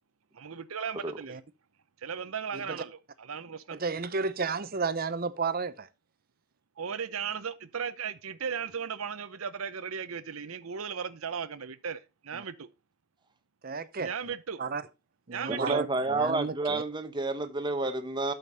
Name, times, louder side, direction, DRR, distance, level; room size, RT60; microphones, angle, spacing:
voice 1, 0.3-1.4 2.0-3.8 6.8-12.0 12.3-12.7 14.0-14.6 15.3-15.8, right 6 dB, 85° right, 0.8 m, -36 dB
voice 2, 3.7-5.9 12.3-12.4 13.6-14.3 14.6-14.8 15.3-16.8, right 4 dB, 45° right, 0.7 m, -33 dB
voice 3, 15.5-18.3, right 2 dB, 20° right, 0.9 m, -30 dB
12.5 x 5.2 x 3.9 m
head